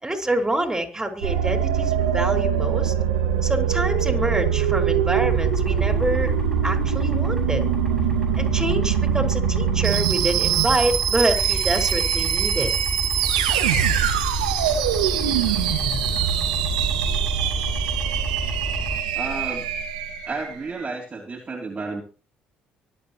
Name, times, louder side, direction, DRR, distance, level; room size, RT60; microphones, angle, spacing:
voice 1, 0.0-2.9 3.4-6.3 6.6-7.6 8.4-12.7, right 1 dB, 15° right, 5 dB, 4.9 m, -26 dB
sound 1, 1.2-20.6, right 9 dB, 90° right, 2.0 m, -23 dB
sound 2, 5.3-19.0, equal, 5° left, 7.4 m, -30 dB
voice 2, 19.1-19.7 20.2-22.0, right 3 dB, 35° right, 0 dB, 3.3 m, -31 dB
24.5 x 8.7 x 3.0 m, 0.35 s
hypercardioid pair, 60°, 4 cm